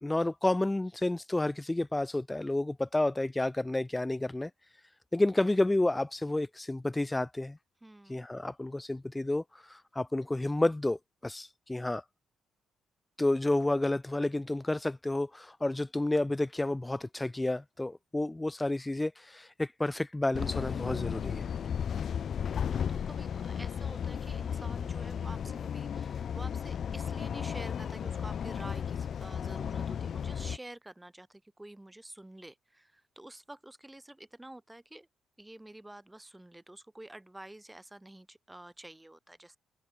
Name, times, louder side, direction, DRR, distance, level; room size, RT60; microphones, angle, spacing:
voice 1, 0.0-4.5 5.1-7.6 8.0-12.0 13.2-21.5, left 2 dB, 10° left, 0.6 m, -30 dB
voice 2, 7.8-8.2 22.3-35.1 35.4-39.6, right 1 dB, 10° right, 6.3 m, -49 dB
sound 1, 20.3-30.6, left 8 dB, 55° left, 1.2 m, -34 dB
cardioid pair, 90°, 0 cm